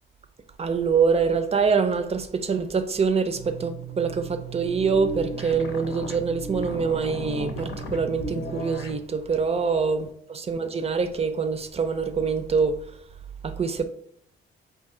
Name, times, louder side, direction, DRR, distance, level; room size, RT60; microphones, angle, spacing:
voice 1, 0.6-13.0 13.4-13.8, right 5 dB, 30° right, 0.5 m, -25 dB
sound 1, 3.3-9.0, right 2 dB, 70° left, 0.7 m, -35 dB
4.4 x 2.6 x 3.7 m
cardioid pair, 90°, 20 cm